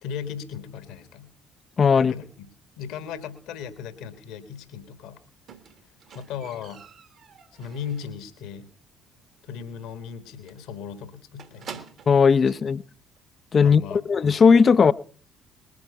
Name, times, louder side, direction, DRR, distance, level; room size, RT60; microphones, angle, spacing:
voice 1, 0.0-1.3 2.0-2.5 2.8-5.2 6.1-6.8 7.5-8.7 9.4-11.9 12.6-12.7 13.6-14.0, left 7 dB, 60° left, 11 dB, 1.6 m, -37 dB
voice 2, 1.8-2.1 12.1-12.8 13.5-14.9, left 5 dB, 40° left, 16 dB, 0.6 m, -17 dB
Squeak, 5.5-8.3 8.6-9.0 9.3-9.4 9.7-9.8 10.1-10.2 10.5-12.3 13.2-13.3, right 7 dB, 50° right, 1.6 m, -46 dB
20.5 x 9.4 x 5.6 m, 0.43 s
figure-of-eight pair, 45°, 0 cm